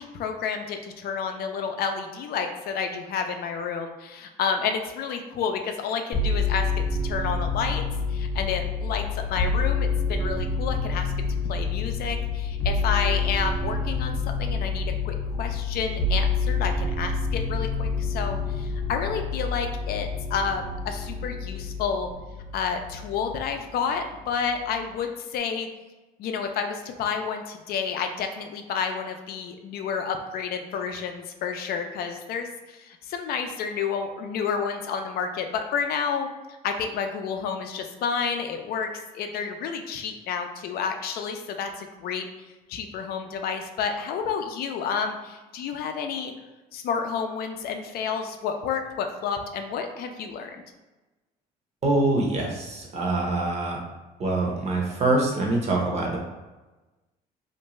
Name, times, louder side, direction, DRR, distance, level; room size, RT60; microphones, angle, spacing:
voice 1, 0.0-7.8 8.1-11.1 11.5-22.1 22.5-25.7 26.2-36.3 36.6-42.3 42.7-46.3 46.7-50.6, left 6 dB, 65° left, 5 dB, 0.4 m, -30 dB
sound 1, 6.1-23.5 23.9-24.7, left 3 dB, 45° left, 0.8 m, -28 dB
voice 2, 51.8-53.8 54.2-56.2, right 2 dB, 40° right, -1 dB, 0.7 m, -24 dB
2.5 x 2.2 x 3.0 m, 1.2 s
cardioid pair, 110°, 17 cm